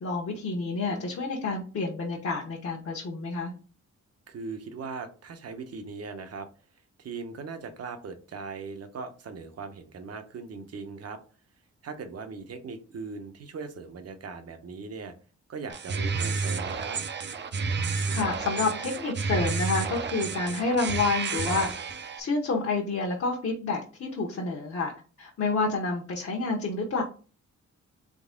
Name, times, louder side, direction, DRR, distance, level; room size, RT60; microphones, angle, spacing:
voice 1, 0.0-3.5 18.1-21.7 22.2-24.9 25.2-27.0, left 3 dB, 55° left, -1 dB, 1.0 m, -29 dB
voice 2, 4.3-11.2 11.8-15.1 15.5-17.0, right 4 dB, 60° right, 8 dB, 0.9 m, -39 dB
sound 1, 15.7-22.2, right 4 dB, 40° right, 0.6 m, -30 dB
3.9 x 3.5 x 3.7 m, 0.36 s
cardioid pair, 110°, 29 cm